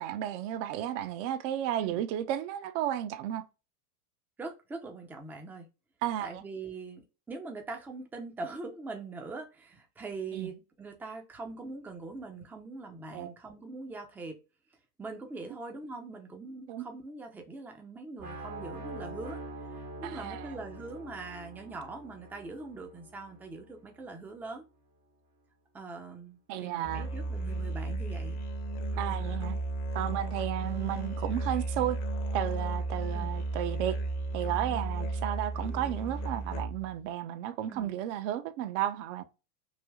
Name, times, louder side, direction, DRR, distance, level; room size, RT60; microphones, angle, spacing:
voice 1, 0.0-3.4 6.0-6.4 10.3-10.5 13.1-13.3 16.7-16.8 20.0-20.6 26.5-27.1 29.0-29.6 29.9-32.0 32.3-34.0 34.3-39.3, right 12 dB, 55° right, 0.6 m, -33 dB
voice 2, 4.4-5.7 6.2-14.4 15.0-19.4 19.7-24.6 25.7-28.4 28.9-29.2 30.6-30.7 33.1-33.3 37.7-37.9, right 3 dB, 5° right, 0.4 m, -42 dB
sound 1, 18.2-24.1, right 1 dB, 80° right, 1.4 m, -44 dB
Musical instrument, 26.8-37.0, right 2 dB, 35° left, 0.7 m, -34 dB
3.3 x 2.6 x 2.2 m
hypercardioid pair, 100°, 45 cm